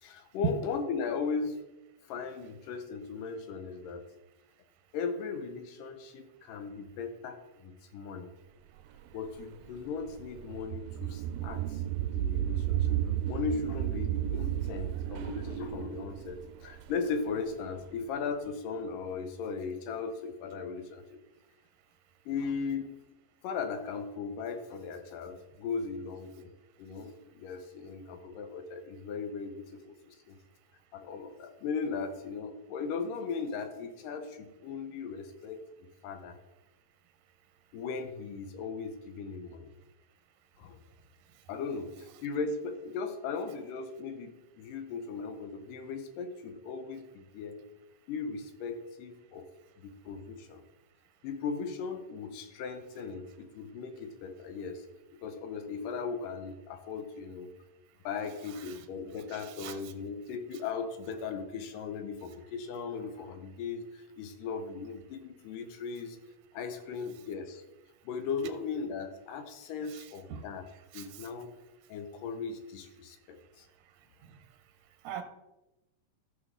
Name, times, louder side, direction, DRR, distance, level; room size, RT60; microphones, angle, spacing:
voice 1, 0.0-1.6 2.0-4.1 4.9-8.3 9.1-11.8 12.1-13.0 13.3-21.2 22.3-22.9 23.4-26.5 26.8-30.4 30.9-35.6 36.0-36.4 37.7-39.7 40.6-40.8 41.5-47.6 48.1-49.5 49.8-50.6 51.2-54.9 55.1-57.5 58.0-66.2 66.5-67.6 68.0-70.7 70.9-71.5 71.9-73.7, left 5 dB, 75° left, 8 dB, 2.3 m, -37 dB
sound 1, 8.9-17.8, right 12 dB, 90° right, 2.4 m, -33 dB
voice 2, 59.3-59.8 69.9-70.4 70.9-71.1 75.0-75.2, right 7 dB, 70° right, 7 dB, 1.8 m, -36 dB
14.0 x 6.3 x 3.7 m, 0.99 s
omnidirectional pair, 4.2 m